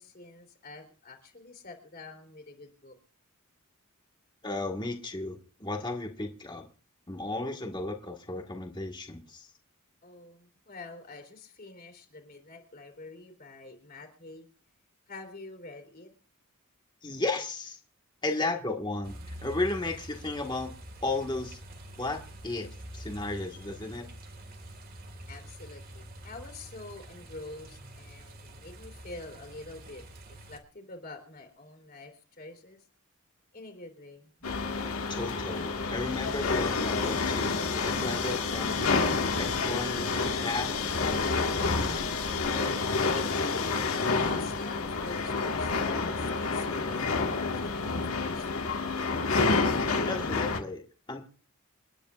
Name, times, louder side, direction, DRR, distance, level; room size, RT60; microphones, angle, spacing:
voice 1, 0.0-3.0 10.0-14.5 15.1-16.1 25.3-30.0 30.3-32.8 33.5-34.5 42.5-49.0, left 2 dB, 45° left, 4 dB, 3.3 m, -47 dB
voice 2, 4.4-6.6 7.1-9.5 17.0-17.8 18.2-20.7 21.0-21.6 22.0-22.2 22.4-24.1 35.1-39.0 39.3-40.7 50.0-50.8 51.1-51.3, left 2 dB, 20° left, 2 dB, 1.6 m, -34 dB
sound 1, 19.0-30.6, right 1 dB, 45° right, 2.0 m, -46 dB
sound 2, 34.4-50.6, left 4 dB, 80° left, 1.8 m, -29 dB
29.0 x 10.0 x 2.5 m, 0.38 s
head